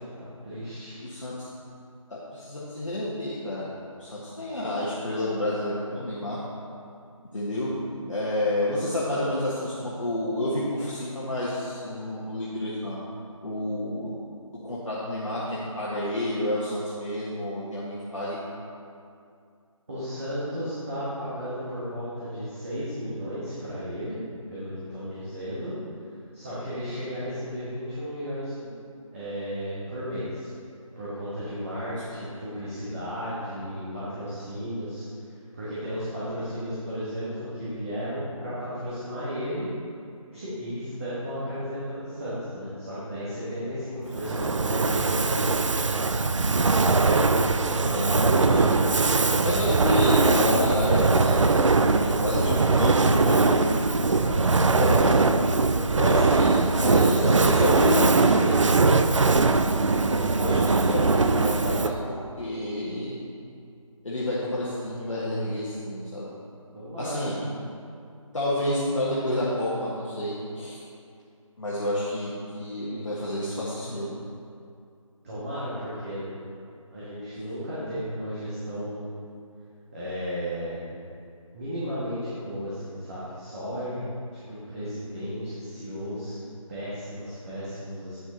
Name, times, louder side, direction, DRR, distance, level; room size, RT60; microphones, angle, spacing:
voice 1, 0.1-1.0 19.9-24.2 24.5-25.7 26.3-28.7 29.1-30.5 30.9-35.1 35.5-39.7 40.3-45.6 49.4-49.6 54.2-54.5 56.0-56.4 56.8-58.9 66.7-67.3 75.2-76.3 76.9-79.1 79.9-80.8 81.5-84.0 84.5-86.4 86.7-88.2, equal, 25° right, -11 dB, 1.5 m, -33 dB
voice 2, 1.0-1.3 2.1-3.7 4.0-6.4 7.3-7.7 8.1-13.0 13.4-14.1 14.6-18.4 31.9-32.0 44.4-44.5 47.0-47.4 47.8-48.7 49.4-53.6 54.5-55.3 55.9-58.1 60.1-63.2 64.0-66.3 67.0-67.5 68.3-70.8 71.6-74.1, left 1 dB, 60° left, -8 dB, 1.5 m, -29 dB
Fire, 44.1-62.1, right 3 dB, 60° right, 0.5 m, -21 dB
9.2 x 6.0 x 4.0 m, 2.4 s
figure-of-eight pair, 165°, 18 cm